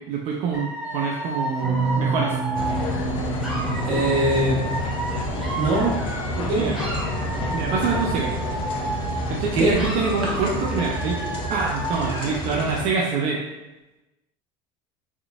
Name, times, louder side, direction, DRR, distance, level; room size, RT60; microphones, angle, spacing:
voice 1, 0.0-2.4 6.5-6.8 7.3-8.3 9.3-11.2 11.5-13.4, right 5 dB, 60° right, -2 dB, 0.5 m, -26 dB
Dog / Alarm, 0.5-6.4 6.7-9.4 9.7-12.5, right 2 dB, 5° right, 1.2 m, -32 dB
sound 1, 1.6-10.9, right 4 dB, 30° right, 0.8 m, -31 dB
sound 2, 2.5-12.9, left 2 dB, 45° left, 0.6 m, -29 dB
voice 2, 3.9-4.6 5.6-5.9 6.3-6.7 9.5-9.8 10.2-10.3, right 1 dB, 80° right, -4 dB, 1.4 m, -22 dB
3.7 x 3.5 x 2.4 m, 1.0 s
cardioid pair, 135°, 13 cm